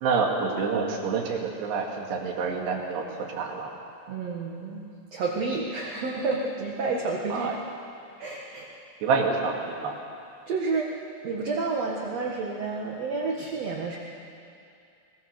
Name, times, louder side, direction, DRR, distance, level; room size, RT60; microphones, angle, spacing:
voice 1, 0.0-3.0 3.4-3.7 7.3-7.6 9.0-9.9, right 5 dB, 75° right, 0 dB, 4.1 m, -27 dB
voice 2, 4.1-4.8 5.1-7.6 8.2-8.7 10.5-10.9 11.2-14.0, right 3 dB, 55° right, -2 dB, 1.9 m, -30 dB
22.0 x 21.0 x 6.6 m, 2.5 s
omnidirectional pair, 4.9 m